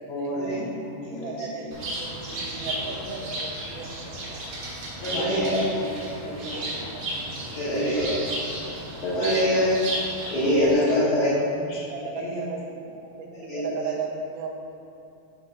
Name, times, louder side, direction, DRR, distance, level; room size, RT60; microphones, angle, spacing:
voice 1, 0.1-1.7 2.2-2.4 5.0-7.2 7.4-7.7 10.9-12.4 13.0-13.1, equal, 75° left, -5 dB, 2.7 m, -36 dB
voice 2, 1.2-1.6 2.0-4.5 5.2-5.6 6.5-7.0 8.0-8.2 8.9-9.0 10.7-11.0 11.9-12.6 12.9-14.5, right 5 dB, 75° right, 0 dB, 2.2 m, -36 dB
Bird, 1.7-10.7, right 1 dB, 60° right, 1.8 m, -34 dB
voice 3, 2.8-3.1 5.0-5.6 7.6-8.2 8.9-9.8 10.3-11.4 13.3-13.9, equal, 60° left, -10 dB, 2.1 m, -24 dB
8.6 x 3.3 x 5.5 m, 2.7 s
omnidirectional pair, 4.0 m